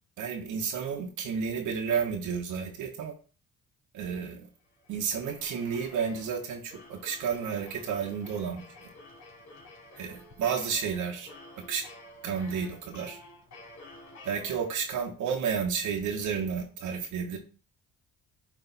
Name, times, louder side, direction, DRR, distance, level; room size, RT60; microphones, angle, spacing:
voice 1, 0.2-3.1 3.9-4.5 4.9-8.6 10.0-11.3 11.6-11.9 12.2-13.2 14.2-17.4, right 6 dB, 85° right, 1 dB, 1.3 m, -31 dB
sound 1, 4.6-15.1, left 1 dB, 60° left, 2.8 m, -51 dB
9.3 x 3.3 x 4.1 m, 0.37 s
cardioid pair, 90°, 30 cm